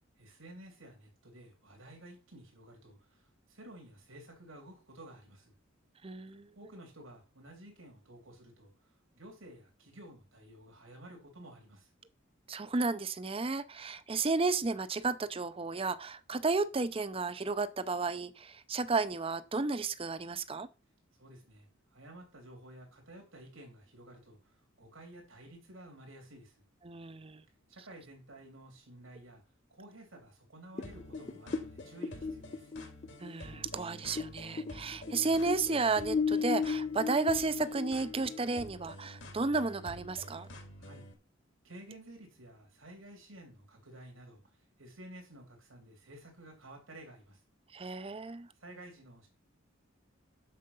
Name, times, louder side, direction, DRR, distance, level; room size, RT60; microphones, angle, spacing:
voice 1, 0.2-5.5 6.5-11.9 21.1-26.6 27.7-29.4 29.7-32.7 40.8-41.0 41.6-47.4 48.5-49.3, right 1 dB, 85° right, 3.1 m, -53 dB
voice 2, 6.0-6.5 12.5-20.7 26.8-27.4 33.2-40.5 47.7-48.5, right 3 dB, 30° right, 0.6 m, -33 dB
sound 1, 30.8-41.1, left 1 dB, 60° left, 2.2 m, -49 dB
sound 2, 30.8-34.3 34.6-38.7, left 5 dB, 35° left, 0.5 m, -35 dB
7.5 x 6.6 x 5.4 m
head